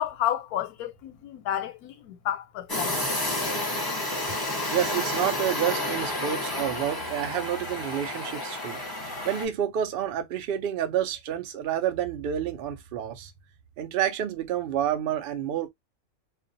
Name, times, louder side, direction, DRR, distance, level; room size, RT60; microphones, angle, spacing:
voice 1, 0.0-3.0, left 11 dB, 90° left, 1.1 m, -31 dB
sound 1, 2.7-9.5, left 2 dB, 20° left, 0.7 m, -30 dB
voice 2, 4.7-8.8 9.2-13.3 13.8-15.7, right 10 dB, 85° right, 0.5 m, -29 dB
2.4 x 2.1 x 2.5 m
omnidirectional pair, 1.5 m